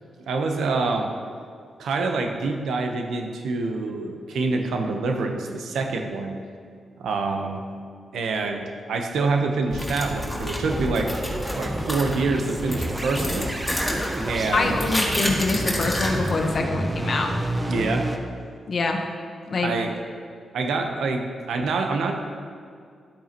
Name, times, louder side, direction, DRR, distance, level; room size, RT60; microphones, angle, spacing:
voice 1, 0.3-1.1 1.8-6.4 7.0-7.7 8.1-11.1 11.5-13.6 14.3-14.8 17.7-18.1 19.6-19.9 20.5-22.1, right 3 dB, 85° right, 3 dB, 1.0 m, -26 dB
sound 1, 9.7-16.6, left 1 dB, 5° left, 2.1 m, -30 dB
sound 2, 10.7-18.2, right 1 dB, 20° right, 1.1 m, -30 dB
voice 2, 14.5-17.3 18.7-19.0 19.5-19.7, left 3 dB, 60° left, 3 dB, 1.1 m, -25 dB
12.0 x 8.3 x 3.0 m, 2.2 s
cardioid pair, 60°, 0 cm